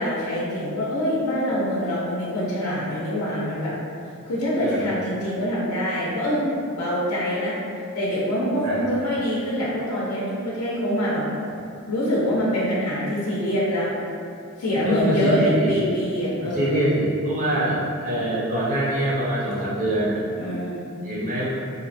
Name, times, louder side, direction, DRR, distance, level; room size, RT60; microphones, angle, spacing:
voice 1, 0.0-3.7 4.2-6.4 6.7-7.5 7.9-11.3 11.9-13.9 14.6-16.8 17.5-17.8 20.4-20.9, equal, 85° left, -7 dB, 0.5 m, -25 dB
voice 2, 8.6-9.1 14.8-15.7 16.4-20.3 21.0-21.5, right 1 dB, 35° right, -8 dB, 0.6 m, -24 dB
2.7 x 2.1 x 2.5 m, 2.4 s
head